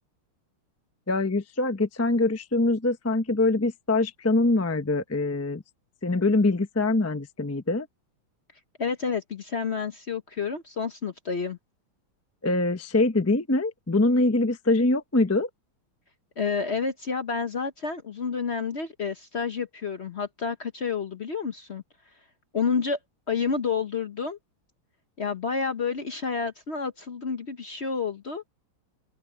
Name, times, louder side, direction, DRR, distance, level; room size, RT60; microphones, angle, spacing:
voice 1, 1.1-5.6 6.0-7.9 12.4-15.5, left 2 dB, 20° left, 0.3 m, -24 dB
voice 2, 8.8-11.6 16.4-21.8 22.5-23.0 23.3-24.4 25.2-28.4, left 5 dB, 45° left, 0.8 m, -29 dB
open air
omnidirectional pair, 2.3 m